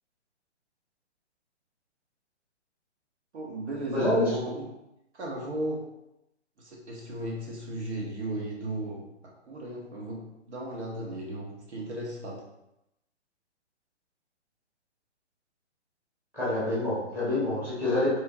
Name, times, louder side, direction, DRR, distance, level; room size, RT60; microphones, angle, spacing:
voice 1, 3.3-4.7 5.2-5.9 6.6-9.0 9.4-12.4, right 1 dB, 70° right, -2 dB, 1.2 m, -35 dB
voice 2, 3.9-4.3 16.3-18.2, left 2 dB, 5° right, -11 dB, 1.2 m, -27 dB
3.7 x 3.4 x 2.6 m, 0.87 s
hypercardioid pair, 155°, 36 cm